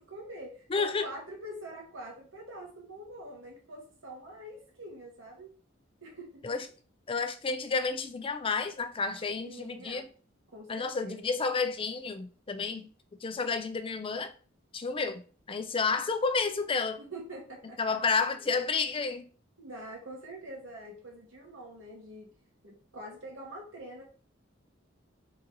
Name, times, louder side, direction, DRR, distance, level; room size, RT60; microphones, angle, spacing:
voice 1, 0.0-5.5 6.0-6.5 9.4-10.1 10.5-11.3 17.0-18.6 19.6-22.3 22.6-24.0, right 1 dB, 80° right, 1.7 m, -45 dB
voice 2, 0.7-1.1 6.4-6.7 7.1-10.1 10.7-12.9 13.2-14.3 14.7-15.2 15.5-17.0 17.8-19.3, left 4 dB, 25° left, 0.4 m, -30 dB
3.8 x 3.0 x 3.9 m
head